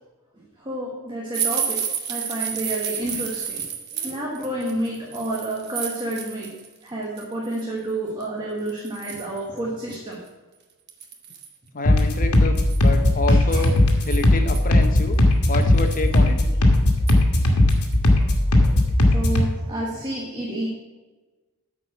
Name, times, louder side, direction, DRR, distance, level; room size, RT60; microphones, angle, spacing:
voice 1, 0.6-1.8 2.1-3.6 3.9-6.5 6.8-10.2 13.3-13.6 16.8-17.2 18.1-18.7 19.1-20.7, right 1 dB, 20° right, -4 dB, 1.4 m, -30 dB
sound 1, 1.3-6.7 7.0-7.6 8.2-8.3 8.7-9.4 9.9-10.0 10.3-10.4 10.9-11.5 12.5-14.6 15.1-15.2 15.6-16.2 17.1-17.4 17.7-17.9 18.3-18.4, right 8 dB, 50° right, 1.1 m, -31 dB
voice 2, 11.7-13.7 14.1-15.2 15.5-16.4, left 3 dB, 35° left, 7 dB, 0.9 m, -28 dB
sound 2, 11.8-19.5, left 1 dB, 80° left, 1.5 m, -18 dB
9.1 x 4.8 x 7.1 m, 1.2 s
head